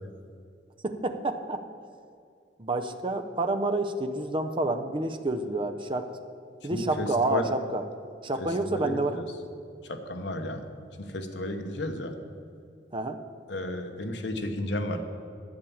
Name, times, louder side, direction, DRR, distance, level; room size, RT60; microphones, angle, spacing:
voice 1, 0.8-1.6 2.6-6.1 6.6-7.8 8.2-9.2 12.9-13.2, right 2 dB, 30° right, 7 dB, 0.7 m, -29 dB
voice 2, 6.7-7.5 8.4-9.2 9.9-10.6 11.0-12.1 13.5-15.0, left 1 dB, 65° left, 5 dB, 1.1 m, -33 dB
10.5 x 8.4 x 7.1 m, 2.4 s
head